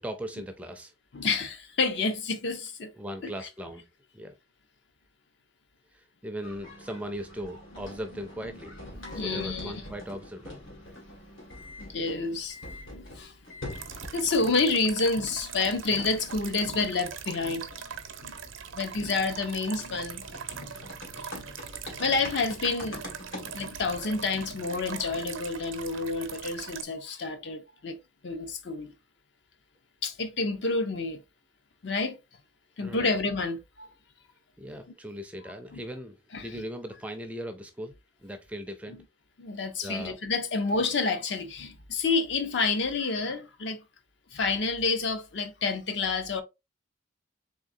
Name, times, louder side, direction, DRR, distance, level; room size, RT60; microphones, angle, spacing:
voice 1, 0.0-0.9 2.9-3.9 4.1-4.3 5.9-10.6 32.8-33.2 34.6-37.9 38.2-39.0 39.8-40.2, equal, 5° right, 0.4 m, -39 dB
voice 2, 1.1-2.9 3.2-3.3 9.0-9.7 11.8-13.3 14.1-17.8 18.2-18.4 18.7-20.3 20.6-20.7 21.2-21.5 22.0-23.0 23.5-28.0 28.2-28.9 30.0-31.2 31.8-32.2 32.8-33.9 35.7-35.8 36.3-36.6 39.4-43.8 44.3-46.4, left 3 dB, 60° left, 0.6 m, -29 dB
sound 1, 6.4-14.4 14.7-25.3, left 1 dB, 80° left, 1.8 m, -45 dB
sound 2, 13.7-26.8, right 7 dB, 80° right, 0.7 m, -42 dB
3.7 x 3.4 x 2.5 m
head